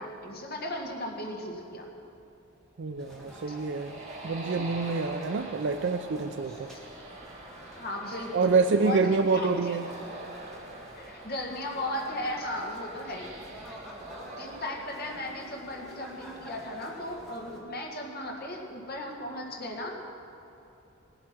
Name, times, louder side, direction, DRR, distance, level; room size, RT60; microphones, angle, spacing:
voice 1, 0.0-1.9 7.8-9.8 11.0-13.3 14.4-19.9, left 1 dB, 50° left, 0 dB, 1.7 m, -36 dB
sound 1, 2.8-16.3, right 2 dB, 40° right, 2.2 m, -45 dB
voice 2, 2.8-3.9 4.2-6.7 8.3-9.8, right 4 dB, 60° right, 8 dB, 0.5 m, -27 dB
sound 2, 3.0-17.6, equal, ahead, 2.0 m, -50 dB
18.0 x 8.1 x 6.0 m, 2.9 s
head